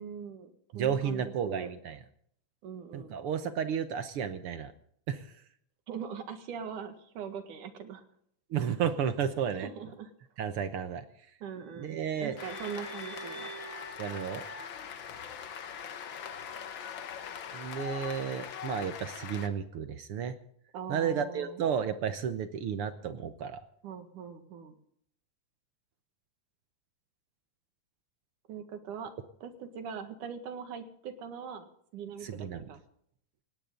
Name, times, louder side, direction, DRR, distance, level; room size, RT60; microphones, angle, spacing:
voice 1, 0.0-1.7 2.6-3.2 5.9-8.0 9.6-10.1 11.4-13.5 20.7-21.6 23.8-24.7 28.5-29.1 29.4-32.8, right 7 dB, 85° right, 8 dB, 3.3 m, -41 dB
voice 2, 0.7-2.0 2.9-4.7 5.1-5.3 8.5-9.7 10.4-11.0 11.8-12.4 14.0-14.4 17.5-20.3 20.9-23.6 32.2-32.7, right 7 dB, 65° right, 10 dB, 1.4 m, -32 dB
sound 1, 11.6-15.9, right 2 dB, 25° left, 7.7 m, -47 dB
Cheering / Applause, 12.4-19.5, left 8 dB, 55° left, 1.4 m, -42 dB
18.5 x 17.5 x 3.8 m, 0.66 s
omnidirectional pair, 3.5 m